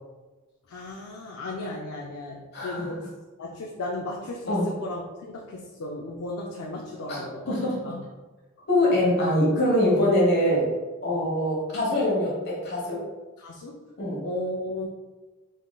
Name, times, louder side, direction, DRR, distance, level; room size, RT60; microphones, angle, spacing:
voice 1, 0.7-3.1 3.4-7.6 7.8-8.0 11.1-11.3 13.4-13.8 14.2-14.9, left 1 dB, 85° left, -1 dB, 0.5 m, -35 dB
voice 2, 2.5-2.9 4.5-4.7 7.1-7.7 8.7-10.7 11.0-13.0 14.0-14.2, left 1 dB, 50° left, -5 dB, 1.2 m, -23 dB
3.6 x 3.6 x 2.3 m, 1.2 s
head